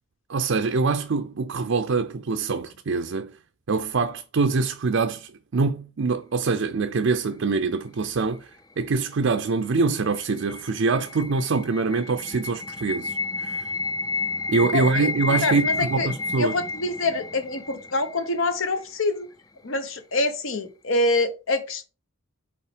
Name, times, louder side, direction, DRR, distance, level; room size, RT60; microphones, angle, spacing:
voice 1, 0.3-3.3 3.7-8.5 8.8-13.7 14.5-16.6, right 4 dB, 60° right, 0.5 m, -24 dB
sound 1, 9.7-18.7, left 3 dB, 15° left, 0.3 m, -31 dB
voice 2, 14.7-15.1 15.4-16.1 16.4-19.3 19.6-21.8, left 2 dB, 65° left, 1.0 m, -26 dB
5.5 x 4.2 x 4.9 m
head